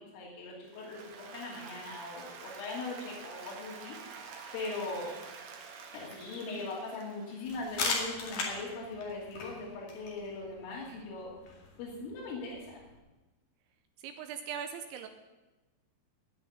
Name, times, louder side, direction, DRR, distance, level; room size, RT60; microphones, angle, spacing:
voice 1, 0.0-4.0 4.5-5.2 5.9-11.3 11.8-12.8, left 3 dB, 85° left, -5 dB, 5.3 m, -40 dB
Applause, 0.7-7.9, right 5 dB, 60° right, 2.9 m, -48 dB
sound 1, 7.5-13.0, left 3 dB, 50° left, 3.3 m, -39 dB
voice 2, 14.0-15.1, right 8 dB, 80° right, 7 dB, 2.9 m, -40 dB
16.5 x 5.9 x 9.4 m, 1.1 s
omnidirectional pair, 5.7 m